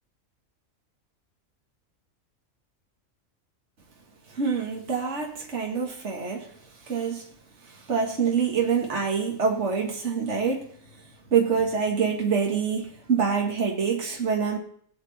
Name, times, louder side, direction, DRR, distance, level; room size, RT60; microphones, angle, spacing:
voice 1, 4.3-6.5 6.9-7.3 7.9-10.6 11.3-14.6, right 6 dB, 55° right, 0 dB, 2.3 m, -25 dB
20.0 x 8.8 x 4.3 m, 0.62 s
omnidirectional pair, 1.4 m